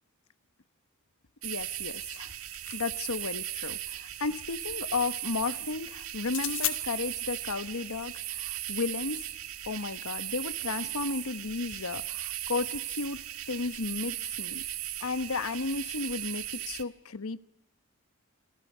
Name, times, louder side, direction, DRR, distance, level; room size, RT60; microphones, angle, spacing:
voice 1, 1.4-2.3 2.7-9.3 9.7-14.6 15.0-17.4, left 4 dB, 80° left, 14 dB, 1.0 m, -34 dB
sound 1, 1.4-16.8, right 13 dB, 80° right, 1.5 m, -37 dB
sound 2, 2.5-3.5 6.2-6.8, left 14 dB, 65° left, 1.8 m, -35 dB
27.5 x 27.0 x 5.5 m, 0.86 s
head